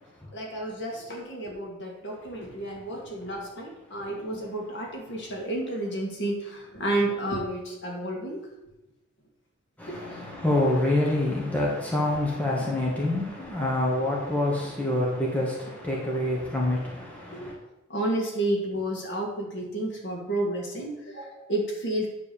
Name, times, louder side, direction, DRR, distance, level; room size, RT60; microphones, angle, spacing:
voice 1, 0.3-8.4 9.9-10.2 16.7-16.8 17.3-17.5 17.9-22.1, right 1 dB, 50° left, 1.9 m, -31 dB
voice 2, 9.8-17.5, left 1 dB, 5° left, 1.3 m, -26 dB
9.6 x 3.6 x 6.9 m
head